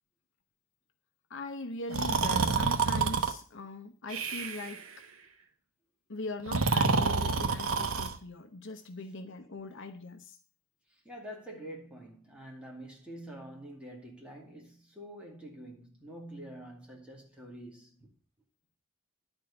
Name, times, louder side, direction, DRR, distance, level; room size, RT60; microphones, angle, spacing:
voice 1, 1.3-4.8 6.1-10.4 11.5-11.6, left 2 dB, 60° left, 0.9 m, -41 dB
Breathing, 1.9-3.3 4.1-4.8 6.4-8.2, right 4 dB, 75° right, 1.1 m, -28 dB
voice 2, 11.0-18.1, right 1 dB, 5° right, 2.4 m, -46 dB
11.0 x 4.5 x 6.8 m
head